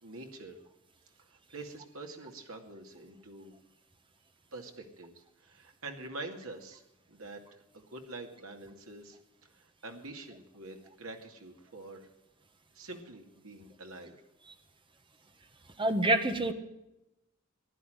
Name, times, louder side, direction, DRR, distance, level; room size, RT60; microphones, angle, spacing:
voice 1, 0.0-0.6 1.5-3.5 4.5-5.1 5.4-6.8 7.1-9.2 9.5-12.1 12.7-14.2, right 2 dB, 70° right, 3 dB, 2.5 m, -46 dB
voice 2, 15.8-16.5, right 2 dB, 25° right, 7 dB, 1.4 m, -26 dB
15.5 x 11.0 x 7.9 m, 0.91 s
head